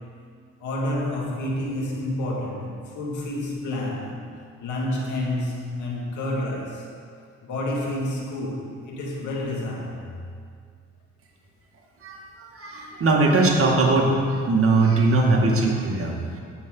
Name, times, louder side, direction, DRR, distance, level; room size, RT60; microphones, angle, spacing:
voice 1, 0.6-4.2 4.6-6.9 7.4-10.1, left 1 dB, 75° left, -1 dB, 2.2 m, -29 dB
voice 2, 12.0-16.1, right 2 dB, 45° right, -1 dB, 2.1 m, -20 dB
15.5 x 7.4 x 3.9 m, 2.2 s
cardioid pair, 90°, 30 cm